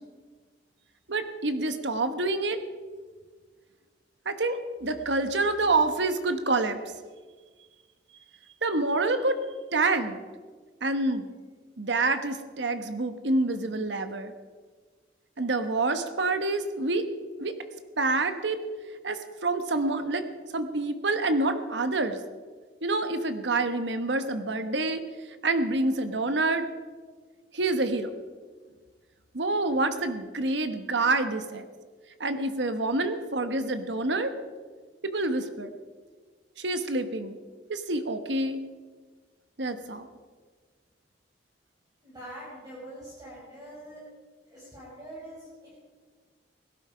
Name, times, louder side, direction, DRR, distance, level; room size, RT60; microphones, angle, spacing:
voice 1, 1.1-2.6 4.2-6.8 8.6-9.4 9.7-10.2 10.8-11.3 11.8-14.3 15.4-17.1 17.4-17.5 18.0-18.6 19.0-20.3 20.5-22.2 22.8-25.0 25.4-26.7 27.5-28.1 29.3-31.7 32.2-34.3 35.0-35.7 36.6-37.3 37.7-38.6 39.6-40.1, right 2 dB, 75° right, 9 dB, 1.1 m, -27 dB
voice 2, 42.0-44.0 44.5-45.8, right 1 dB, 20° right, -8 dB, 5.4 m, -44 dB
17.5 x 12.0 x 5.1 m, 1.5 s
head